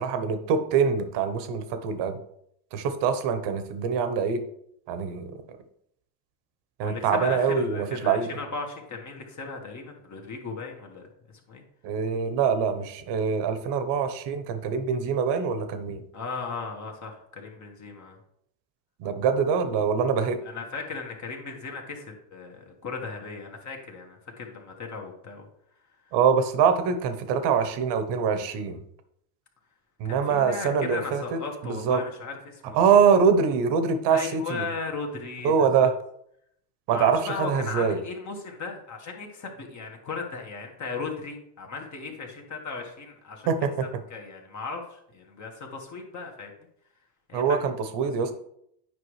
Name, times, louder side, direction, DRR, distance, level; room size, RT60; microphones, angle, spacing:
voice 1, 0.0-2.2 2.7-4.4 4.9-5.3 6.8-8.3 11.8-16.0 19.0-20.4 26.1-28.8 30.0-32.0 32.7-34.7 35.4-35.9 36.9-38.0 43.5-43.9 47.3-48.3, right 6 dB, 55° right, 9 dB, 1.2 m, -24 dB
voice 2, 6.8-11.6 16.1-18.2 20.4-25.5 30.0-32.8 34.1-35.9 36.9-43.5 44.1-46.5 47.3-47.6, left 4 dB, 35° left, 2 dB, 1.7 m, -36 dB
9.4 x 5.1 x 3.3 m, 0.73 s
hypercardioid pair, 90°, 50 cm